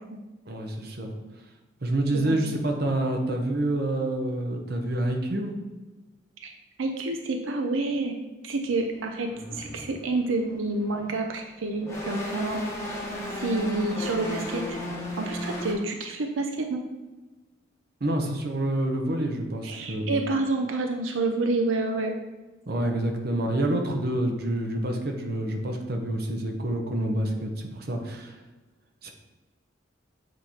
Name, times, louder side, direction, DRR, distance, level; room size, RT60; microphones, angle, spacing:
voice 1, 0.5-1.1 1.8-5.5 18.0-20.2 22.7-28.4 29.0-29.1, right 1 dB, 55° right, 3 dB, 0.8 m, -27 dB
voice 2, 6.8-8.2 8.4-12.6 13.4-14.8 15.2-16.8 19.6-22.2 22.8-22.9, right 2 dB, 90° right, 4 dB, 0.5 m, -28 dB
sound 1, 8.6-8.7 9.2-11.4 11.7-15.7, left 1 dB, 15° left, 1.0 m, -35 dB
7.6 x 3.1 x 4.3 m, 1.2 s
head